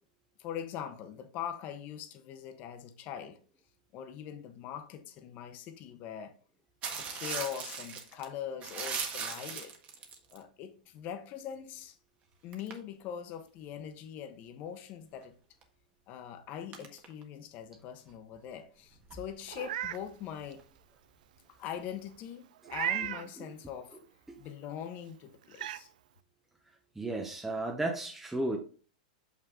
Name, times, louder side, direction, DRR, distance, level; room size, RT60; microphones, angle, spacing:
voice 1, 0.4-3.4 3.9-6.4 6.9-9.7 10.3-12.0 12.4-15.4 16.1-20.6 21.5-24.0 24.4-25.9, left 9 dB, 40° left, 1.1 m, -42 dB
sound 1, 6.8-8.3 8.6-10.4 12.5-12.8 15.6-15.7 16.7-17.2 18.1-18.2 18.5-18.6 18.9-20.8 21.9-22.0, right 6 dB, 30° right, 1.5 m, -39 dB
Meow, 19.5-20.0 20.5-20.6 22.7-23.3 24.9-25.0 25.5-25.8, right 12 dB, 70° right, 0.4 m, -34 dB
voice 2, 27.0-28.6, right 2 dB, 5° right, 1.0 m, -33 dB
6.6 x 5.8 x 3.7 m
hypercardioid pair, 125°, 4 cm